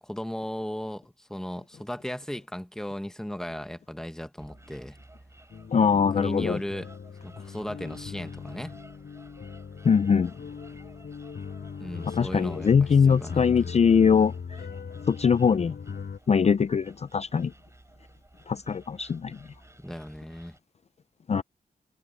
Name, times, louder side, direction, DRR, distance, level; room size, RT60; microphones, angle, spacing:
voice 1, 0.0-5.0 5.9-6.9 7.2-8.8 11.8-13.4 19.8-20.6, equal, 5° left, 1.1 m, -36 dB
sound 1, 4.4-20.6, right 2 dB, 15° right, 5.7 m, -54 dB
sound 2, 5.5-16.2, left 6 dB, 75° left, 5.7 m, -39 dB
voice 2, 5.7-6.6 9.8-10.3 12.1-14.6 15.1-15.7 16.3-17.5 18.5-19.4 21.3-21.4, left 6 dB, 40° left, 0.4 m, -22 dB
wide cardioid pair, 160°, 17 cm